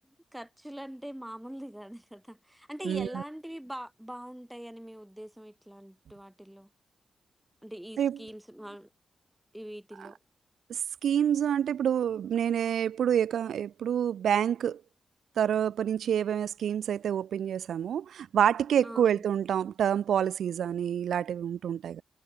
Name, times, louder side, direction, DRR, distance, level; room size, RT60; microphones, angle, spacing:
voice 1, 0.3-6.7 7.6-8.9 9.5-10.2 18.8-19.2, equal, 5° right, 2.7 m, -43 dB
voice 2, 2.8-3.2 8.0-8.2 10.0-10.1 10.7-14.8 15.4-22.0, right 9 dB, 90° right, 0.7 m, -27 dB
cardioid pair, 100°, 0 cm